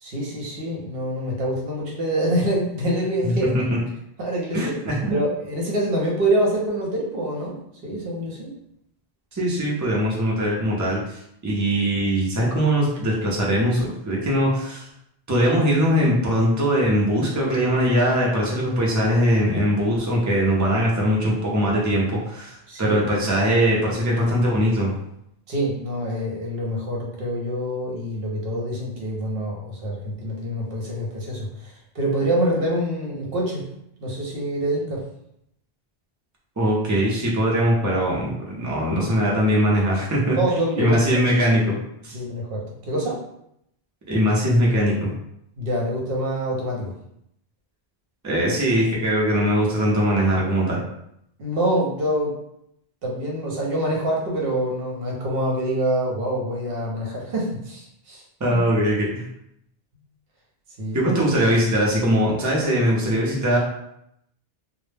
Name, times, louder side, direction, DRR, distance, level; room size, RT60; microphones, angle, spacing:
voice 1, 0.0-3.5 4.2-4.7 5.1-7.6 7.8-8.5 22.7-23.0 25.5-33.6 34.0-35.0 40.4-41.3 42.1-43.2 45.6-46.9 51.4-52.3 53.0-58.2 58.5-58.6 60.8-61.0, right 1 dB, 65° right, -2 dB, 0.9 m, -25 dB
voice 2, 4.5-5.2 9.3-14.9 15.3-24.9 36.6-40.4 40.8-41.8 42.0-42.2 44.1-45.1 48.2-50.8 58.4-59.2 60.9-63.6, equal, 25° right, -3 dB, 0.4 m, -21 dB
2.1 x 2.0 x 3.2 m, 0.76 s
omnidirectional pair, 1.0 m